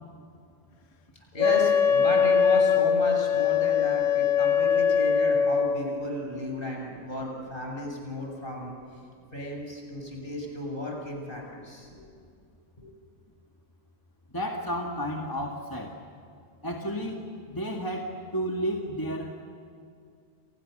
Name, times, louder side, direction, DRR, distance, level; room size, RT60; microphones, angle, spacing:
voice 1, 1.3-8.7 9.3-12.1 12.8-12.9, left 1 dB, 45° left, 0 dB, 6.9 m, -34 dB
Wind instrument woodwind instrument, 1.4-5.9, left 7 dB, 80° left, 1.4 m, -22 dB
voice 2, 14.3-16.0 16.6-19.4, equal, 15° left, 1 dB, 1.9 m, -32 dB
30.0 x 29.5 x 6.6 m, 2.4 s
omnidirectional pair, 1.3 m